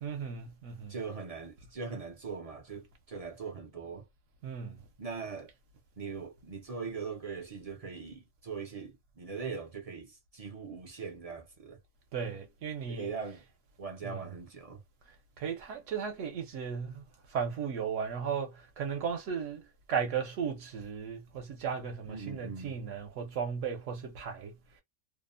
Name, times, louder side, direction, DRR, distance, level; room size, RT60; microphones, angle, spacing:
voice 1, 0.0-0.9 4.4-4.8 12.1-13.1 14.0-14.3 15.4-19.6 19.9-24.5, right 7 dB, 75° right, 1.0 m, -36 dB
voice 2, 0.9-4.1 5.0-5.5 6.0-11.8 12.9-13.4 13.8-14.8 22.1-22.8, right 5 dB, 55° right, 0.4 m, -41 dB
2.7 x 2.0 x 2.4 m
omnidirectional pair, 1.3 m